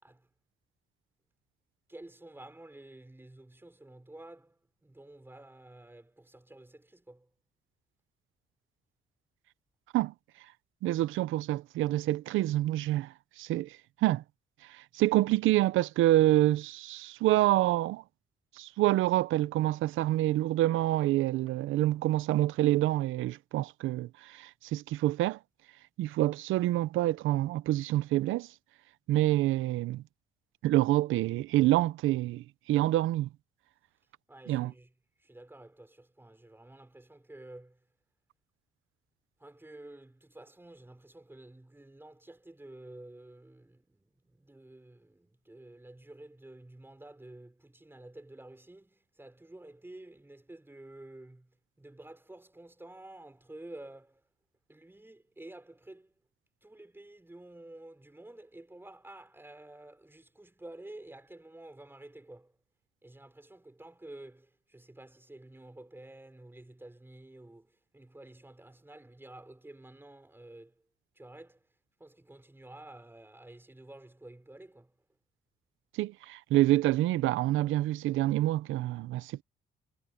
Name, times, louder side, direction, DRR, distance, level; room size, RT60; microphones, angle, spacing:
voice 1, 1.9-7.3 34.3-34.9 35.2-37.9 39.4-54.2 54.7-56.2 56.6-62.6 63.0-70.9 71.1-71.7 72.0-75.0, right 1 dB, 10° right, 5.4 m, -51 dB
voice 2, 10.8-14.2 14.7-18.0 18.6-25.4 26.0-28.5 29.1-30.0 30.6-33.3 34.5-34.7 76.0-79.4, right 15 dB, 90° right, 0.7 m, -27 dB
cardioid pair, 90°, 20 cm